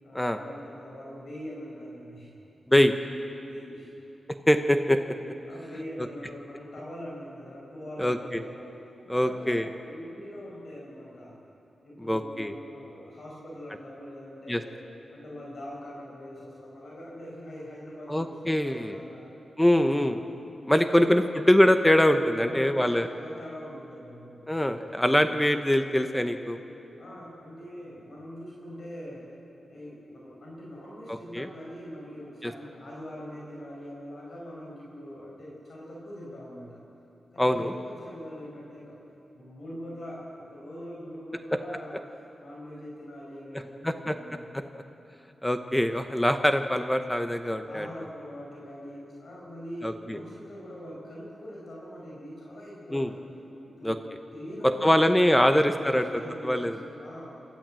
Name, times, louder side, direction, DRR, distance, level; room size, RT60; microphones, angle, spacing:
voice 1, 0.0-2.3 3.4-3.9 5.4-8.8 9.1-11.4 11.8-14.7 15.1-19.3 19.9-20.2 20.8-21.3 22.3-24.6 27.0-29.3 29.7-36.8 37.3-39.0 39.3-44.4 47.6-53.2 53.6-54.1 54.3-57.4, equal, 55° left, -4 dB, 5.5 m, -42 dB
voice 2, 4.5-5.0 6.0-6.1 8.0-8.4 9.1-9.7 12.1-12.5 14.5-14.6 18.1-19.0 19.6-20.2 20.7-23.1 24.5-26.6 31.1-31.5 32.4-32.5 37.4-37.7 43.8-44.1 44.5-44.6 45.4-47.9 49.8-50.2 52.9-53.1 53.8-54.0 54.6-56.0 56.4-56.8, left 1 dB, 10° left, 7 dB, 0.9 m, -23 dB
28.0 x 13.5 x 7.7 m, 3.0 s
wide cardioid pair, 105°, 0 cm